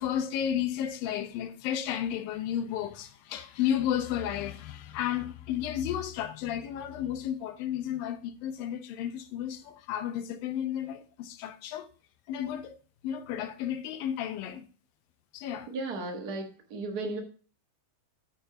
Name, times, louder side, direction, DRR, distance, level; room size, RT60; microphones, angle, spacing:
voice 1, 0.0-11.9 12.3-12.8 13.0-14.7 15.3-15.7, left 10 dB, 85° left, 2.5 m, -32 dB
voice 2, 15.7-16.4 16.7-17.2, right 2 dB, 50° right, 1.1 m, -34 dB
8.8 x 4.5 x 5.5 m
omnidirectional pair, 4.0 m